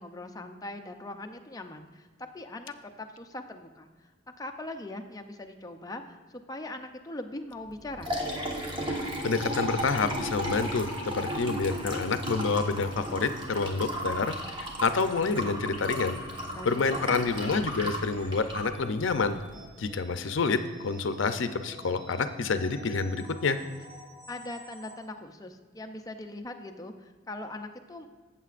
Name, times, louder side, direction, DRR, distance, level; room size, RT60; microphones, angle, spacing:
voice 1, 0.0-2.1 2.3-3.9 4.4-6.2 6.5-8.1 16.5-17.1 24.3-28.1, left 2 dB, 20° left, 5 dB, 0.5 m, -41 dB
Liquid, 7.7-19.6, equal, 25° right, 1.2 m, -35 dB
voice 2, 8.9-14.3 14.8-16.2 16.7-19.4 19.8-23.6, left 4 dB, 70° left, 9 dB, 0.6 m, -28 dB
sound 1, 15.1-25.0, equal, 50° right, 2.0 m, -51 dB
14.0 x 7.4 x 2.5 m, 1.4 s
head